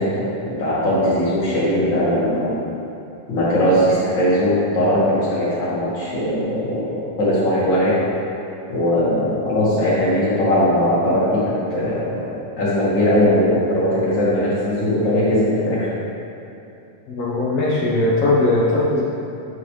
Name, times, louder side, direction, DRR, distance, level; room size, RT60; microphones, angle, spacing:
voice 1, 0.0-2.5 3.3-8.0 8.7-12.2 12.6-15.9, equal, 40° left, -8 dB, 1.9 m, -19 dB
voice 2, 17.1-19.0, left 2 dB, 75° left, -5 dB, 1.3 m, -19 dB
9.4 x 5.5 x 3.2 m, 2.8 s
omnidirectional pair, 3.9 m